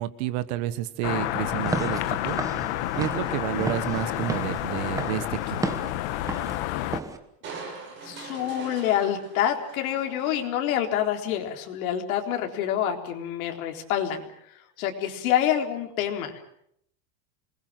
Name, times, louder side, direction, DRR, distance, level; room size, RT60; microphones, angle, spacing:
voice 1, 0.0-2.4 3.0-5.7, right 14 dB, 45° right, 14 dB, 1.5 m, -30 dB
sound 1, 1.0-7.0, left 14 dB, 50° left, 1.4 m, -29 dB
Walk footsteps / Siren, 1.6-7.2, right 3 dB, 5° right, 1.1 m, -34 dB
Crushing, 7.4-10.8 11.2-11.3, right 4 dB, 25° right, 6.4 m, -42 dB
voice 2, 8.0-14.3 14.8-16.3, left 10 dB, 65° left, 4 dB, 4.0 m, -27 dB
26.5 x 21.0 x 7.7 m, 0.71 s
supercardioid pair, 175°, 45 cm